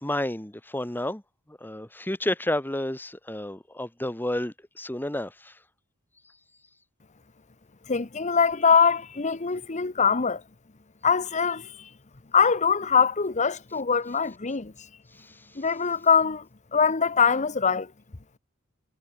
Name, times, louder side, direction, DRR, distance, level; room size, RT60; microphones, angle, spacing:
voice 1, 0.0-1.2 1.5-5.5 15.2-15.3, left 1 dB, 10° left, 1.4 m, -31 dB
voice 2, 7.9-10.4 11.0-11.9 12.3-14.7 15.6-16.4 16.7-17.9, left 6 dB, 35° left, 0.9 m, -23 dB
head